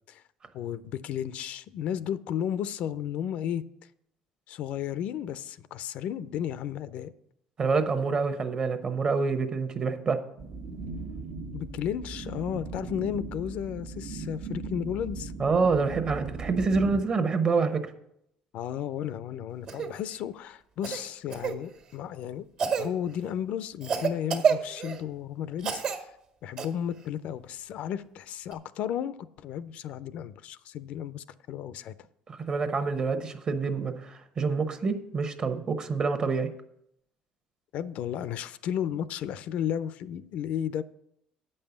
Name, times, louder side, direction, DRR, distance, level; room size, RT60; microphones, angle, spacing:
voice 1, 0.5-3.6 4.5-7.1 11.5-15.3 18.5-22.5 22.8-26.1 26.4-31.9 37.7-40.8, left 9 dB, 65° left, 0.4 m, -33 dB
voice 2, 7.6-10.2 15.4-17.9 32.3-36.5, right 4 dB, 40° right, 1.0 m, -27 dB
sound 1, 10.4-17.0, right 4 dB, 75° right, 1.2 m, -38 dB
Cough, 19.7-19.9 20.8-21.6 22.6-22.9 23.8-25.0 25.6-26.0 26.6-26.7 28.5-28.6, right 6 dB, 60° right, 1.6 m, -28 dB
8.4 x 5.5 x 7.0 m
cardioid pair, 105°, 2 cm